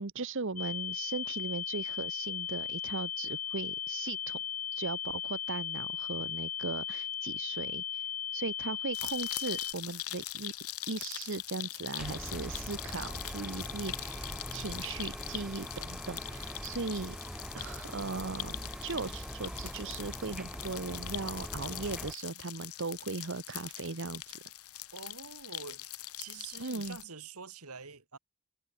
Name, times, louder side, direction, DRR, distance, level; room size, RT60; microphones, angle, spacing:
voice 1, 0.0-4.4 4.7-10.5 10.9-17.2 17.5-24.4 26.6-27.0, right 3 dB, 60° right, 1.1 m, -38 dB
sound 1, 0.6-9.7, left 9 dB, 35° left, 1.6 m, -37 dB
sound 2, 8.9-27.0, left 15 dB, 80° left, 3.0 m, -42 dB
sound 3, 12.0-22.1, equal, 5° right, 1.0 m, -42 dB
voice 2, 24.9-28.2, right 5 dB, 85° right, 2.8 m, -46 dB
head